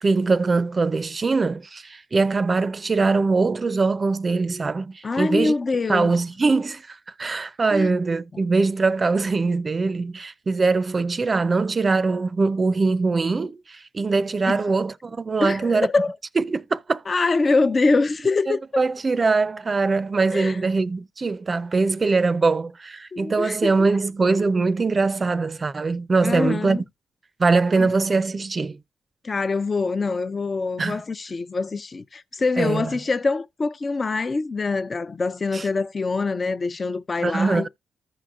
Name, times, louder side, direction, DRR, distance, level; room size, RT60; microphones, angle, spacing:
voice 1, 0.0-5.5 5.9-15.9 16.4-17.0 18.5-26.8 27.4-28.8 30.8-31.0 32.6-32.9 35.5-35.7 37.2-37.7, right 3 dB, 40° right, 0.5 m, -22 dB
voice 2, 5.0-6.1 7.7-7.9 14.5-14.6 15.4-16.2 17.1-18.6 20.3-20.6 23.1-23.7 26.2-26.8 27.8-27.9 29.2-37.7, left 3 dB, 40° left, 0.5 m, -24 dB
14.5 x 4.9 x 2.4 m
cardioid pair, 65°, 0 cm